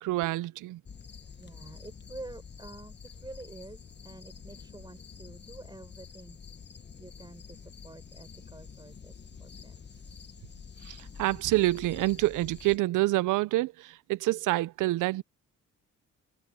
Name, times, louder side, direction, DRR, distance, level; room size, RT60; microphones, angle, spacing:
voice 1, 0.0-0.8 10.8-15.2, right 18 dB, 85° right, 0.6 m, -27 dB
sound 1, 0.9-12.8, left 6 dB, 35° left, 1.4 m, -48 dB
voice 2, 1.4-6.4 6.7-9.7, right 2 dB, 15° right, 4.9 m, -48 dB
cardioid pair, 90°, 30 cm